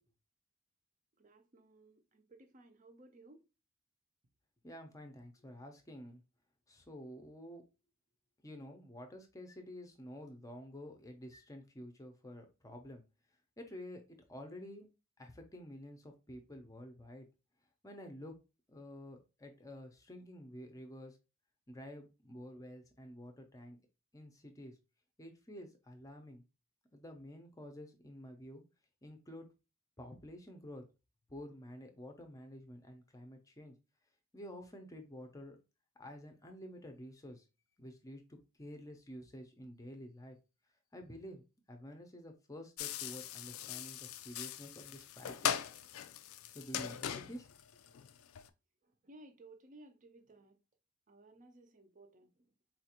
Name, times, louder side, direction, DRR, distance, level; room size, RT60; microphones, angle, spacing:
voice 1, 1.2-3.4 48.8-50.6 51.1-52.4, right 2 dB, 35° right, 0.5 m, -59 dB
voice 2, 4.6-6.2 6.7-7.6 8.4-13.0 13.6-14.9 15.2-17.3 17.8-18.3 18.7-21.2 21.7-23.8 24.1-24.8 25.2-26.4 26.9-28.6 29.0-29.5 30.0-30.8 31.3-33.7 34.3-35.6 36.0-37.4 37.8-40.4 40.9-45.6 46.5-47.5 47.9-48.0, equal, 15° left, 0.5 m, -50 dB
sound 1, 42.8-48.5, left 9 dB, 85° left, 0.4 m, -40 dB
4.2 x 2.4 x 2.8 m
head